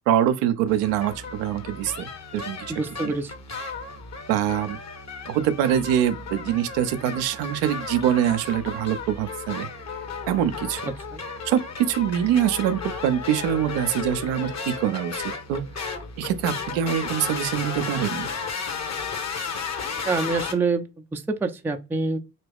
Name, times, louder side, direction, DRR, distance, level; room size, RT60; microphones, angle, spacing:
voice 1, 0.1-2.7 3.0-3.1 4.3-4.8 5.3-9.7 10.3-10.8 11.5-15.6 16.2-18.3, right 10 dB, 65° right, 0.6 m, -24 dB
sound 1, 0.7-20.5, left 4 dB, 35° left, 1.0 m, -34 dB
voice 2, 2.7-3.3 11.1-11.2 20.0-22.2, right 3 dB, 5° right, 0.4 m, -26 dB
2.9 x 2.8 x 3.4 m
figure-of-eight pair, 40°, 49 cm